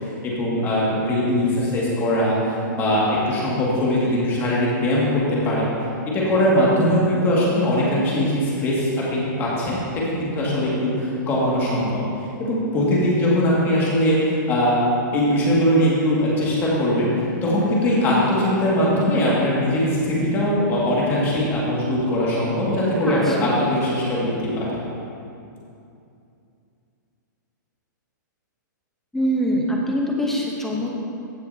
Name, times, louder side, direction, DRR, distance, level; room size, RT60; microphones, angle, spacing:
voice 1, 0.0-5.7 6.1-12.0 12.4-14.8 15.1-24.8, left 1 dB, 20° left, -6 dB, 2.1 m, -21 dB
voice 2, 23.0-23.6 29.1-30.9, equal, 5° left, -2 dB, 0.9 m, -24 dB
15.5 x 6.4 x 2.8 m, 2.6 s
hypercardioid pair, 160°, 10 cm